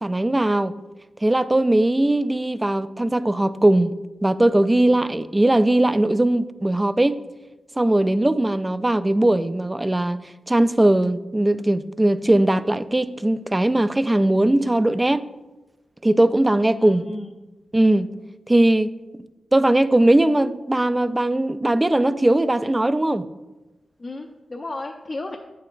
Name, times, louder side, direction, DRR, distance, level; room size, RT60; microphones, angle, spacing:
voice 1, 0.0-0.7 1.2-7.2 7.8-10.2 10.5-15.2 16.0-17.0 17.7-18.1 18.5-18.9 19.5-23.3, right 1 dB, 20° right, 0.3 m, -19 dB
voice 2, 16.8-17.4 24.0-25.4, left 2 dB, 40° left, 0.6 m, -33 dB
8.7 x 6.6 x 2.5 m
cardioid pair, 75°, 0 cm